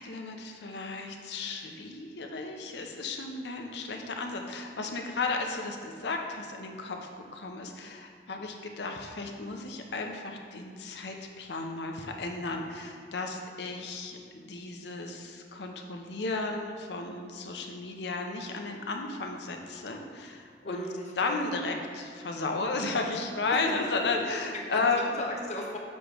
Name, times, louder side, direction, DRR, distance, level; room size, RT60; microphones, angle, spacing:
voice 1, 0.0-20.9 21.2-25.2, left 3 dB, 70° left, 3 dB, 0.7 m, -34 dB
voice 2, 20.6-21.8 23.5-23.6 24.7-24.9 25.2-25.8, left 1 dB, 40° left, -1 dB, 0.7 m, -37 dB
7.1 x 3.0 x 4.9 m, 2.3 s
head